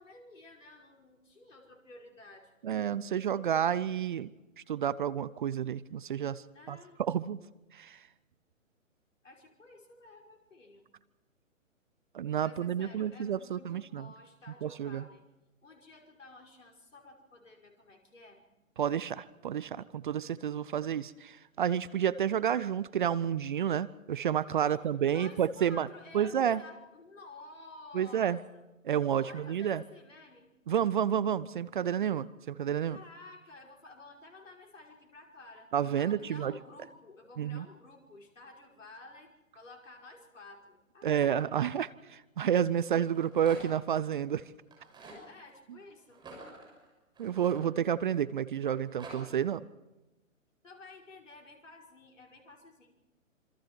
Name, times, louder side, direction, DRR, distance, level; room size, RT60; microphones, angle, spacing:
voice 1, 0.0-2.5 6.5-7.0 9.2-10.8 12.4-15.2 15.6-18.4 24.6-28.6 29.2-30.5 32.8-35.7 36.0-41.5 45.3-46.2 50.6-53.0, left 2 dB, 65° left, 1 dB, 5.4 m, -52 dB
voice 2, 2.6-4.3 4.7-7.4 7.7-8.0 12.1-14.1 14.6-15.0 18.8-25.9 26.1-26.6 27.9-28.4 28.8-29.8 30.7-33.0 35.7-36.5 37.4-37.6 41.0-44.5 47.2-49.7, right 9 dB, 40° right, 18 dB, 0.7 m, -30 dB
Rattle, 43.1-43.9 44.6-45.2 46.1-48.1 48.6-49.2, right 2 dB, 10° right, 6.5 m, -49 dB
27.0 x 25.5 x 4.6 m, 1.0 s
figure-of-eight pair, 130°, 40 cm